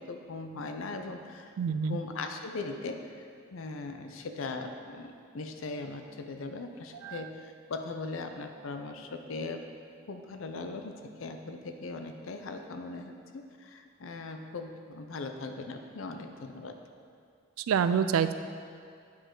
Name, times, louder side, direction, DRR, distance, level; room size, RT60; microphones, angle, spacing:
voice 1, 0.0-9.7 10.1-16.7, left 3 dB, 70° left, 6 dB, 0.5 m, -39 dB
voice 2, 1.6-2.0 7.0-7.2 17.6-18.3, right 7 dB, 80° right, 11 dB, 0.3 m, -27 dB
8.6 x 5.0 x 3.8 m, 2.3 s
head